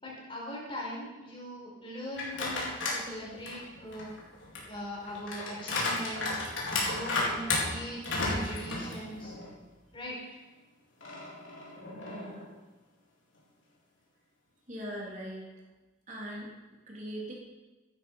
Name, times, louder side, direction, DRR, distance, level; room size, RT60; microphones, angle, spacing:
voice 1, 0.0-4.1 4.7-6.3 6.7-9.3 9.9-10.2, equal, 25° left, -4 dB, 5.0 m, -40 dB
sound 1, 2.1-3.0 3.5-9.5 9.9-10.0 11.0-12.5, left 2 dB, 75° left, 4.2 m, -33 dB
voice 2, 11.9-12.5 14.7-15.4 16.1-16.5 16.9-17.3, equal, 40° right, -4 dB, 3.7 m, -40 dB
16.0 x 12.0 x 5.8 m, 1.2 s
head